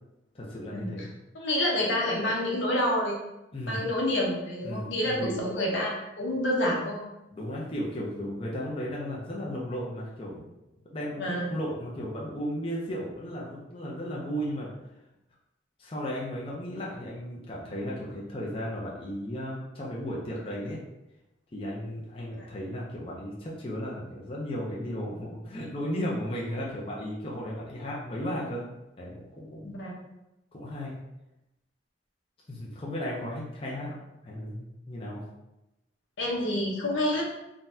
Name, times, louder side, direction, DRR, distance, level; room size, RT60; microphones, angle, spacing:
voice 1, 0.3-1.1 3.5-3.8 4.6-5.3 7.3-10.5 10.9-14.7 15.8-20.8 21.5-28.6 29.0-29.8 30.5-30.9 32.5-34.0 34.2-35.2, equal, 30° left, -4 dB, 0.5 m, -35 dB
voice 2, 1.3-3.2 3.7-7.1 11.2-11.5 22.4-22.5 29.6-29.9 36.2-37.2, left 1 dB, 80° left, -2 dB, 0.8 m, -28 dB
3.7 x 2.2 x 2.6 m, 0.93 s
head